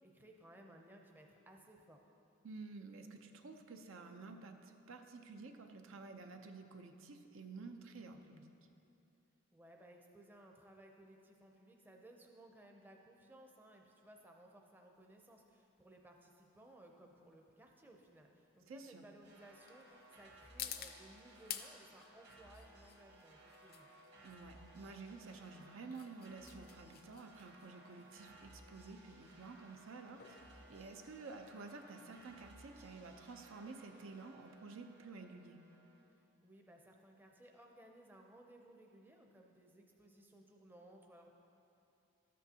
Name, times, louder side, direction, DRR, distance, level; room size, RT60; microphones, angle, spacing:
voice 1, 0.0-2.0 9.5-23.9 36.2-41.3, right 1 dB, 10° right, 1 dB, 0.5 m, -60 dB
voice 2, 2.4-8.5 18.7-19.0 24.2-35.6, right 3 dB, 85° right, 5 dB, 0.6 m, -51 dB
sound 1, 15.0-31.6, left 10 dB, 45° left, 0.4 m, -53 dB
sound 2, 19.2-36.1, right 1 dB, 60° right, 1.7 m, -61 dB
13.0 x 8.4 x 2.8 m, 2.8 s
head